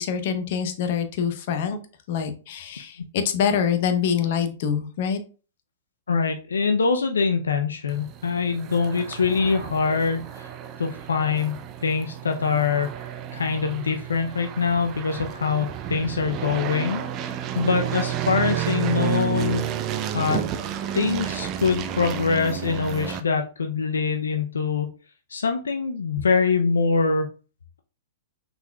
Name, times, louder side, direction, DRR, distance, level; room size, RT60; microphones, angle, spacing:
voice 1, 0.0-1.8 2.1-5.2, left 7 dB, 55° left, 8 dB, 0.9 m, -25 dB
voice 2, 6.1-10.5 10.8-17.0 17.5-19.6 20.1-20.5 20.9-24.9 25.3-27.3, left 5 dB, 85° left, 5 dB, 0.5 m, -24 dB
Plane Fly Over, 7.9-23.2, right 10 dB, 35° right, 0.6 m, -31 dB
5.6 x 4.0 x 2.3 m, 0.35 s
hypercardioid pair, 115°, 0 cm